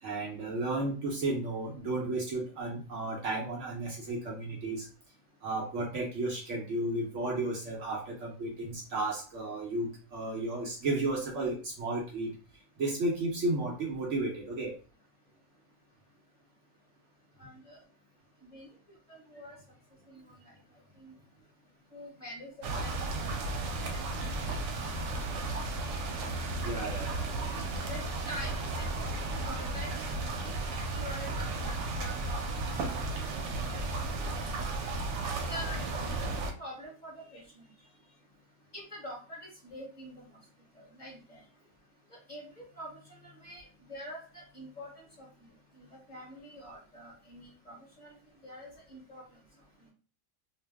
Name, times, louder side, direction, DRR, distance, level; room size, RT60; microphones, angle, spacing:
voice 1, 0.0-4.9 5.4-12.3 12.8-14.7 26.6-27.2, right 2 dB, 60° right, -2 dB, 0.8 m, -33 dB
voice 2, 17.4-17.8 18.4-18.7 19.1-19.6 20.1-20.5 20.9-21.1 21.9-24.6 25.3-25.9 27.9-29.9 30.4-34.5 35.5-35.8 36.1-37.7 38.7-40.4 40.7-41.4 42.1-48.2 48.4-49.4 49.8-49.9, equal, 30° left, -5 dB, 1.0 m, -47 dB
sound 1, 22.6-36.5, right 2 dB, 85° right, 1.2 m, -34 dB
2.9 x 2.0 x 3.3 m, 0.38 s
omnidirectional pair, 1.8 m